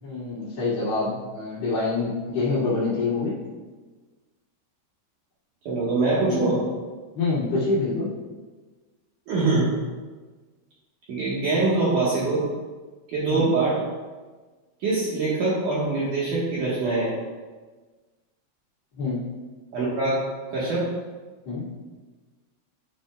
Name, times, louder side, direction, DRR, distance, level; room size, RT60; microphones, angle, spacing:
voice 1, 0.0-3.3 7.1-8.1 13.3-13.5 19.0-19.2 21.4-21.6, left 3 dB, 40° left, -12 dB, 2.6 m, -26 dB
voice 2, 5.6-6.6 9.3-9.7 11.1-12.4 13.1-13.8 14.8-17.1 19.7-20.2 20.5-20.9, right 3 dB, 80° right, -8 dB, 1.8 m, -23 dB
11.0 x 7.5 x 2.3 m, 1.3 s
omnidirectional pair, 5.9 m